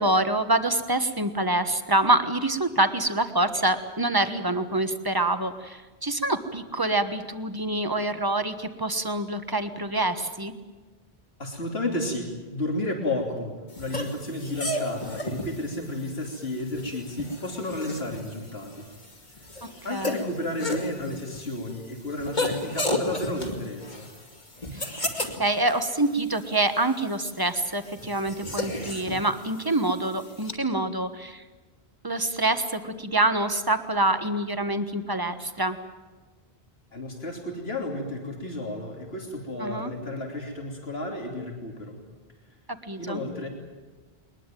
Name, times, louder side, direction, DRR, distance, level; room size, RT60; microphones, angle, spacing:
voice 1, 0.0-10.5 19.9-20.3 25.4-31.4 32.0-35.8 39.6-39.9 42.8-43.2, right 2 dB, 20° right, 9 dB, 1.4 m, -26 dB
voice 2, 11.4-13.5 13.8-18.8 19.8-24.0 36.9-42.0 43.0-43.5, left 1 dB, 75° left, 2 dB, 3.5 m, -32 dB
sound 1, 13.7-30.5, left 1 dB, 45° left, 2.8 m, -34 dB
21.5 x 21.0 x 9.1 m, 1.3 s
omnidirectional pair, 1.1 m